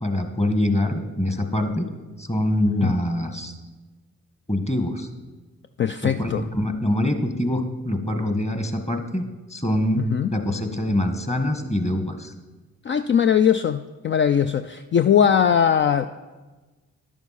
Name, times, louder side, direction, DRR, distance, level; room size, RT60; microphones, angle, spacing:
voice 1, 0.0-1.9 2.2-3.6 4.5-5.1 6.0-12.3, left 1 dB, 20° left, 6 dB, 1.4 m, -24 dB
voice 2, 5.8-6.4 10.0-10.3 12.8-16.1, left 8 dB, 35° left, 9 dB, 0.4 m, -20 dB
11.0 x 7.0 x 4.1 m, 1.2 s
supercardioid pair, 45°, 35 cm